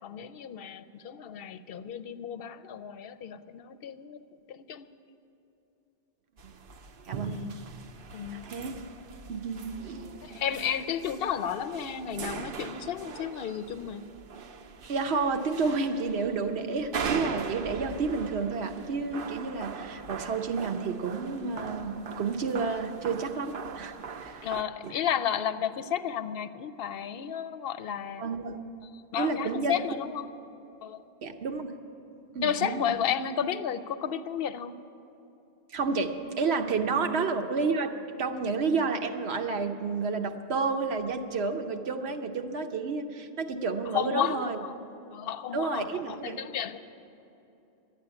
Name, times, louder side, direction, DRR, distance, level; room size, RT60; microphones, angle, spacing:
voice 1, 0.0-4.2 4.5-4.9 7.2-7.7 8.1-8.5 10.2-14.0 24.4-28.2 29.1-30.3 30.8-31.0 32.4-34.7 37.0-37.1 43.9-44.8 45.1-46.8, left 8 dB, 70° left, 12 dB, 0.8 m, -32 dB
sound 1, 6.4-24.6, right 5 dB, 65° right, 0.8 m, -40 dB
voice 2, 8.3-8.8 9.3-10.2 14.9-24.5 24.8-24.9 28.2-28.6 29.2-29.8 31.2-31.7 32.3-32.9 35.7-37.9 38.2-44.6 45.5-46.4, right 4 dB, 80° right, 6 dB, 1.1 m, -30 dB
12.0 x 8.9 x 9.8 m, 2.9 s
omnidirectional pair, 1.1 m